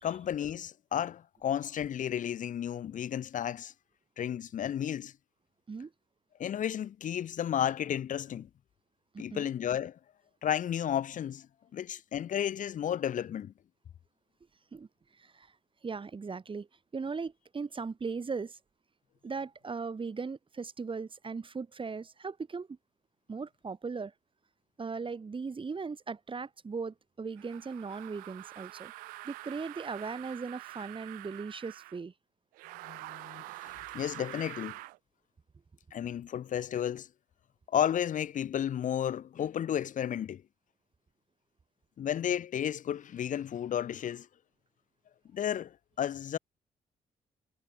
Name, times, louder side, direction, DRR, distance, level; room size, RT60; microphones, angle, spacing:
voice 1, 0.0-3.7 4.2-5.1 6.4-8.5 9.2-10.0 10.4-11.5 11.7-13.5 32.8-34.8 35.9-37.1 37.7-40.4 42.0-44.3 45.3-46.4, left 9 dB, 65° left, 3.0 m, -33 dB
voice 2, 9.1-9.5 14.7-14.9 15.2-15.5 15.8-16.7 16.9-18.6 19.2-22.8 23.3-24.1 24.8-28.9 29.2-32.1, right 4 dB, 35° right, 4.1 m, -38 dB
sound 1, 27.4-32.0 32.5-35.0, right 21 dB, 90° right, 2.5 m, -46 dB
supercardioid pair, 60°, 14 cm